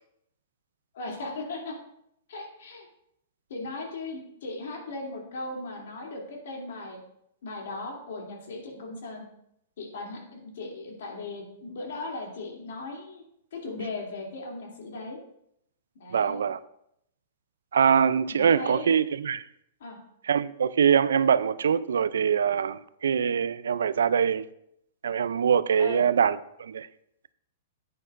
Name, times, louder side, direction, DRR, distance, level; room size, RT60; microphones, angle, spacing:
voice 1, 0.9-1.7 2.3-2.9 3.5-7.0 7.4-9.2 9.8-13.2 13.5-15.2 16.0-16.4 18.3-18.9 19.8-20.0 25.8-26.0, left 2 dB, 70° left, 2.6 m, -37 dB
voice 2, 16.1-16.6 17.7-19.4 20.3-24.4 25.0-26.9, right 7 dB, 85° right, 0.4 m, -23 dB
10.5 x 8.5 x 2.5 m
hypercardioid pair, 125°, 0 cm